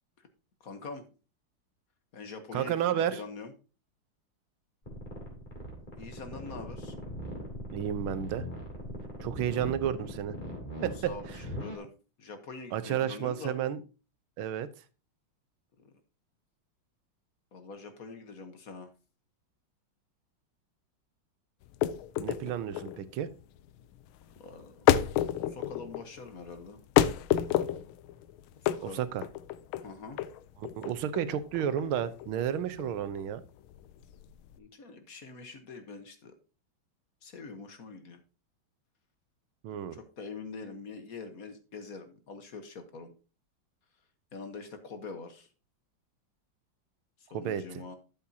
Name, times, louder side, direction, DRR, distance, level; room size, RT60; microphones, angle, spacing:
voice 1, 0.6-1.1 2.1-3.5 6.0-7.0 11.0-11.9 12.2-13.5 15.8-15.9 17.5-18.9 24.4-26.8 28.6-29.0 29.8-30.2 34.6-36.3 37.2-38.2 39.7-43.1 44.3-45.5 47.2-48.0, left 4 dB, 50° left, 8 dB, 1.5 m, -44 dB
voice 2, 2.5-3.2 7.7-8.4 9.2-10.4 10.8-11.1 12.7-13.8 14.4-14.7 22.2-23.3 28.8-29.2 30.6-33.4 39.6-40.0 47.3-47.8, right 10 dB, 85° right, 14 dB, 1.6 m, -31 dB
sound 1, 4.9-11.8, equal, 20° left, 3.4 m, -40 dB
sound 2, 21.6-34.6, left 12 dB, 90° left, 1.5 m, -30 dB
12.0 x 7.4 x 2.8 m, 0.32 s
omnidirectional pair, 2.2 m